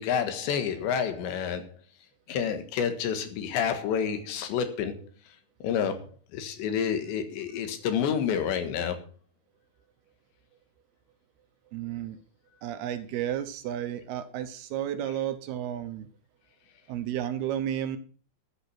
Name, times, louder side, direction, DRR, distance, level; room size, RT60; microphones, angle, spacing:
voice 1, 0.0-1.7 2.3-5.1 5.6-9.0, left 7 dB, 80° left, 3.8 m, -29 dB
voice 2, 11.7-12.2 12.6-16.1 16.9-18.0, right 10 dB, 75° right, 2.7 m, -32 dB
13.5 x 8.8 x 5.9 m
omnidirectional pair, 5.0 m